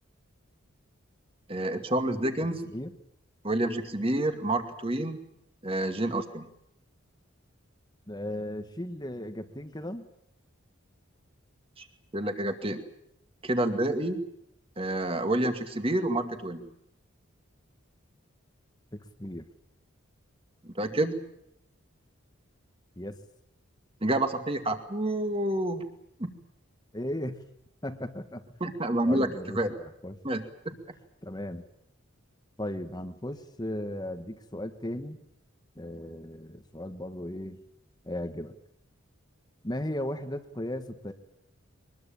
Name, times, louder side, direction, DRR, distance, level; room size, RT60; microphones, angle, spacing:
voice 1, 1.5-2.6 3.4-5.2 5.6-6.5 11.8-11.9 12.1-12.8 13.4-14.2 14.8-16.7 20.6-21.2 24.0-25.9 26.2-26.3 28.6-29.3 29.5-29.7 30.2-30.8, right 1 dB, 25° right, 7 dB, 2.3 m, -28 dB
voice 2, 8.1-10.1 18.9-19.5 23.0-23.2 26.9-27.4 27.8-28.4 29.0-30.2 31.2-31.6 32.6-35.2 35.7-37.6 38.0-38.5 39.6-41.1, left 1 dB, 20° left, 7 dB, 1.6 m, -36 dB
24.0 x 21.0 x 8.8 m, 0.77 s
head